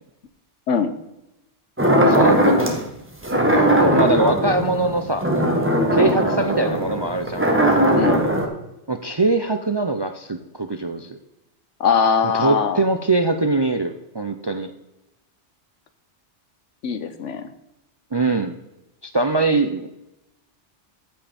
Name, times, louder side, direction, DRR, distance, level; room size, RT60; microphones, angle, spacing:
sound 1, 1.8-2.8 3.2-8.5, right 1 dB, 10° right, 1.3 m, -19 dB
voice 1, 2.0-2.4 3.8-5.3 5.9-7.5 8.9-11.2 12.2-14.7 18.1-18.6 19.0-19.9, right 3 dB, 35° right, 7 dB, 0.4 m, -22 dB
voice 2, 11.8-12.8 16.8-17.5, left 6 dB, 85° left, 10 dB, 1.2 m, -21 dB
14.5 x 5.5 x 4.3 m, 0.91 s
omnidirectional pair, 1.2 m